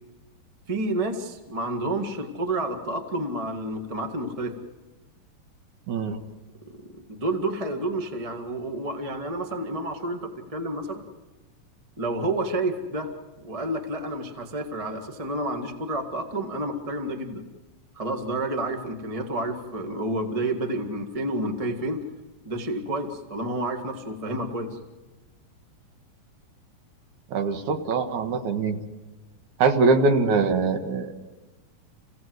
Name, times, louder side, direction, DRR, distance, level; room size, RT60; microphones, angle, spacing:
voice 1, 0.7-4.5 6.9-11.1 12.0-13.1 13.4-17.4 17.9-22.0 22.4-24.8, right 1 dB, 20° right, 4 dB, 0.8 m, -30 dB
voice 2, 5.9-6.2 27.3-28.8 29.6-31.1, right 4 dB, 65° right, 5 dB, 2.6 m, -23 dB
28.5 x 17.0 x 7.9 m, 1.2 s
omnidirectional pair, 4.1 m